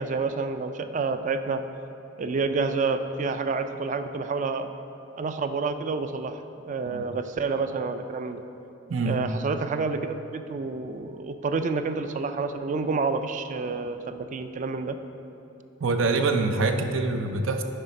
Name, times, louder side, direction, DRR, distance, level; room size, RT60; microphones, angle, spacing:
voice 1, 0.0-1.6 2.2-4.7 5.2-6.4 6.6-8.4 9.1-15.0, right 4 dB, 40° right, 9 dB, 0.3 m, -29 dB
voice 2, 8.9-9.2 15.8-17.6, right 3 dB, 90° right, 6 dB, 0.6 m, -25 dB
9.9 x 4.1 x 5.1 m, 2.8 s
head